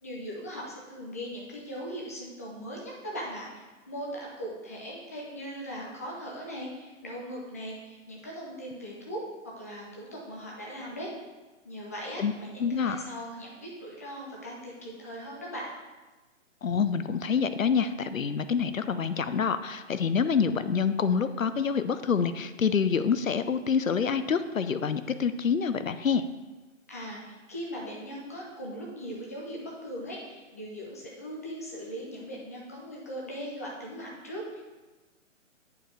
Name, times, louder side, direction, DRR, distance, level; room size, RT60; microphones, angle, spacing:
voice 1, 0.0-11.1 11.6-15.7 26.9-34.6, equal, 15° left, -4 dB, 0.5 m, -39 dB
voice 2, 12.6-13.0 16.6-26.2, left 6 dB, 90° left, 12 dB, 0.5 m, -27 dB
8.4 x 4.6 x 3.3 m, 1.2 s
figure-of-eight pair, 135°, 39 cm